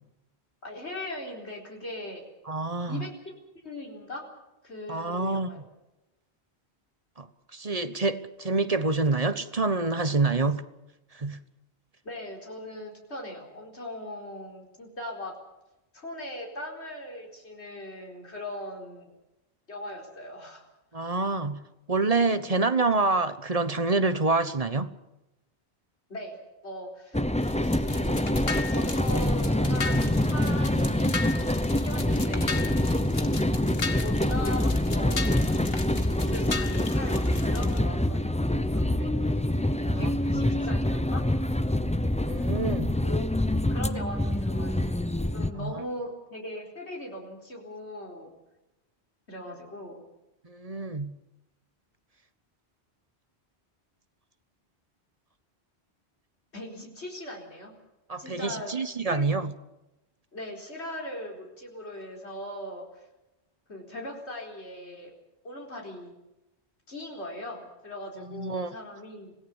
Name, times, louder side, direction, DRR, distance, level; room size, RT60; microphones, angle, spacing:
voice 1, 0.6-2.2 2.9-3.3 3.6-4.2 4.6-5.6 12.0-15.4 15.9-19.1 19.7-20.6 26.1-26.4 26.6-27.3 27.8-28.2 28.7-31.3 31.8-32.9 33.6-35.8 36.3-39.4 39.7-41.2 43.0-43.4 43.7-44.8 45.3-48.3 49.3-50.0 56.5-57.8 58.2-58.8 59.1-59.3 60.3-63.1 63.7-65.1 65.4-66.1 66.9-69.3, left 1 dB, 80° left, 4.6 m, -39 dB
voice 2, 2.5-3.1 4.9-5.5 7.2-7.3 7.5-10.6 11.1-11.4 20.9-21.6 21.9-24.9 39.9-40.1 42.3-42.9 45.5-45.8 50.4-51.1 58.1-59.5 68.2-68.7, right 3 dB, 35° right, 1.2 m, -27 dB
sound 1, 27.1-45.5, left 1 dB, 5° left, 0.7 m, -26 dB
sound 2, 27.4-37.8, left 4 dB, 60° left, 2.0 m, -37 dB
26.0 x 18.0 x 7.2 m
omnidirectional pair, 1.1 m